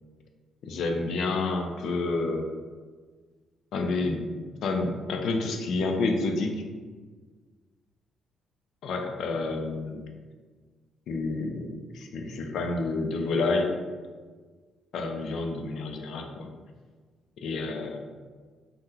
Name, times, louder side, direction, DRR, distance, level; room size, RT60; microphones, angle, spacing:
voice 1, 0.6-2.5 3.7-4.3 4.6-6.6 8.8-10.1 11.1-13.7 14.9-16.5 17.4-18.1, left 3 dB, 70° left, 4 dB, 0.4 m, -29 dB
3.6 x 2.1 x 2.8 m, 1.5 s
cardioid pair, 90°, 0 cm